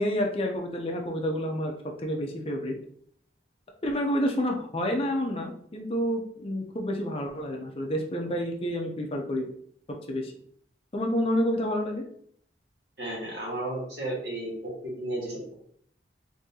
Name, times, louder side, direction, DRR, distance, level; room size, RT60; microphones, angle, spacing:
voice 1, 0.0-1.7 2.0-2.7 3.8-9.5 10.1-10.3 10.9-12.0, equal, 30° left, 2 dB, 0.5 m, -29 dB
voice 2, 13.0-15.5, right 1 dB, 65° right, -4 dB, 1.4 m, -33 dB
3.8 x 2.6 x 2.7 m, 0.62 s
head